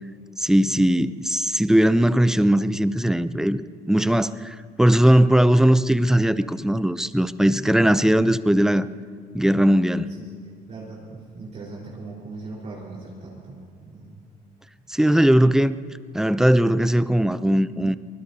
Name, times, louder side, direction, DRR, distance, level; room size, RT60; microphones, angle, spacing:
voice 1, 0.4-8.9 9.3-10.1 14.9-15.8 16.1-18.0, right 1 dB, 5° right, 13 dB, 0.5 m, -19 dB
voice 2, 10.7-14.2, right 3 dB, 45° right, -5 dB, 4.4 m, -39 dB
24.0 x 20.0 x 2.8 m, 2.1 s
cardioid pair, 110°, 17 cm